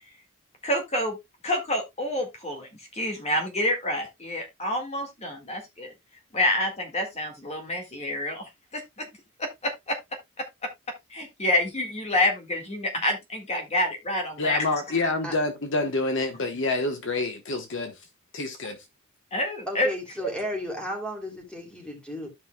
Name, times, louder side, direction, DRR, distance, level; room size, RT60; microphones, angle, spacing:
voice 1, 0.6-1.2 1.4-5.9 6.3-8.8 9.4-10.0 10.4-10.7 11.1-14.7 19.3-19.9 20.2-20.3, left 1 dB, 30° left, 1.8 m, -28 dB
voice 2, 14.4-18.1 18.3-18.9, left 2 dB, 60° left, 1.1 m, -27 dB
voice 3, 19.7-22.3, equal, 5° left, 2.7 m, -34 dB
14.0 x 5.6 x 2.2 m
head